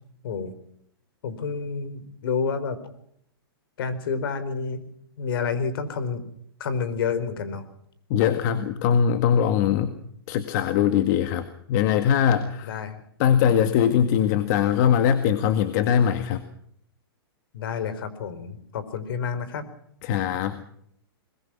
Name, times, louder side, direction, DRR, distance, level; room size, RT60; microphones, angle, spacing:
voice 1, 1.2-2.8 3.8-4.8 5.2-6.2 6.6-7.6 12.6-13.0 17.5-19.6, left 5 dB, 65° left, 13 dB, 4.5 m, -29 dB
voice 2, 8.1-10.0 10.3-12.7 13.2-16.4 20.0-20.6, left 8 dB, 45° left, 9 dB, 1.8 m, -21 dB
22.0 x 21.5 x 6.0 m, 0.69 s
hypercardioid pair, 130°, 13 cm